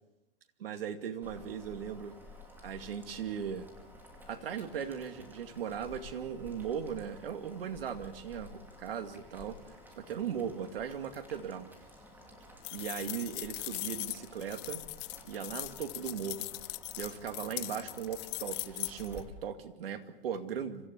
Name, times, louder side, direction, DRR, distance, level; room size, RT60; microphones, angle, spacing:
voice 1, 0.6-2.2 2.6-3.7 4.3-11.7 12.7-14.8 15.2-16.5 17.0-20.9, right 8 dB, 75° right, 7 dB, 2.4 m, -38 dB
Boiling, 1.2-19.2, left 1 dB, 5° right, 5.1 m, -53 dB
sound 1, 12.6-19.2, left 23 dB, 45° left, 0.8 m, -40 dB
26.5 x 15.5 x 8.4 m, 1.0 s
hypercardioid pair, 125°, 29 cm